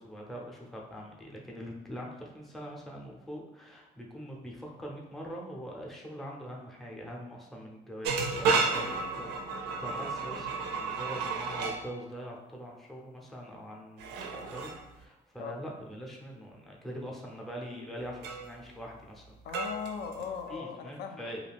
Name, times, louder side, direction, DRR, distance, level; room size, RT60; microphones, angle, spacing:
voice 1, 0.0-19.2 20.5-21.4, equal, ahead, -1 dB, 0.5 m, -43 dB
sound 1, 8.0-11.8 14.0-14.8 18.2-18.5 19.5-20.5, right 4 dB, 90° right, 0.4 m, -32 dB
voice 2, 19.4-21.4, left 6 dB, 70° left, 6 dB, 0.4 m, -39 dB
2.4 x 2.2 x 3.3 m, 1.1 s
cardioid pair, 110°, 17 cm